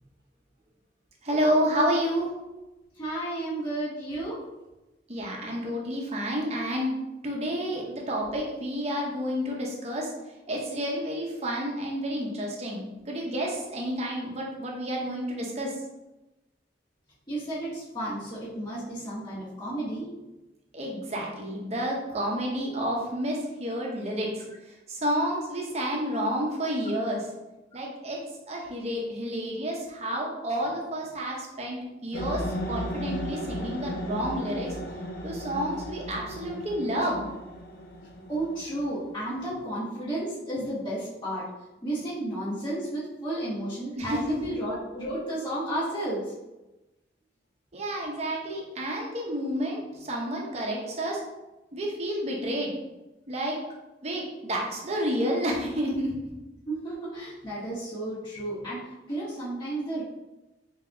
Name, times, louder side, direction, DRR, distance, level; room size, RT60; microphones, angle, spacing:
voice 1, 1.2-2.3 5.1-6.9 7.2-10.1 10.5-15.7 20.7-24.3 24.9-27.2 27.7-28.2 28.5-34.7 35.2-37.2 44.0-44.4 47.7-51.2 51.7-52.7 53.3-53.6 54.0-56.3, equal, 40° right, -1 dB, 0.8 m, -30 dB
voice 2, 3.0-4.4 17.3-20.1 38.3-41.4 41.8-46.2 56.7-58.8 59.1-60.0, right 1 dB, 25° left, -11 dB, 1.2 m, -32 dB
sound 1, 32.1-39.4, equal, 60° left, 0.6 m, -35 dB
4.0 x 3.8 x 2.3 m, 1.0 s
head